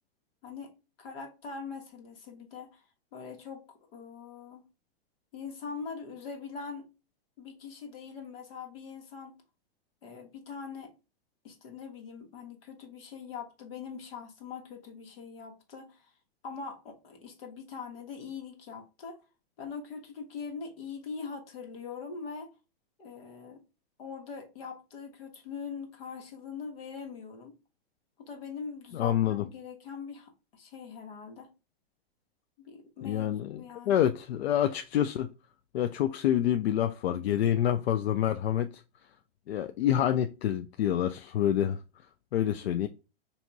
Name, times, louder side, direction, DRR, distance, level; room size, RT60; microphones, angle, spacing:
voice 1, 0.4-2.8 3.1-3.6 3.9-4.7 5.3-6.9 7.4-9.4 10.0-10.9 11.4-16.0 16.4-19.2 19.6-22.5 23.0-23.7 24.0-27.6 28.2-31.5 32.6-34.0, left 5 dB, 70° left, 1.4 m, -42 dB
voice 2, 28.9-29.4 33.0-35.3 35.7-38.8 39.5-41.8 42.3-42.9, left 10 dB, 90° left, 0.5 m, -27 dB
4.5 x 2.7 x 2.6 m
hypercardioid pair, 160°, 31 cm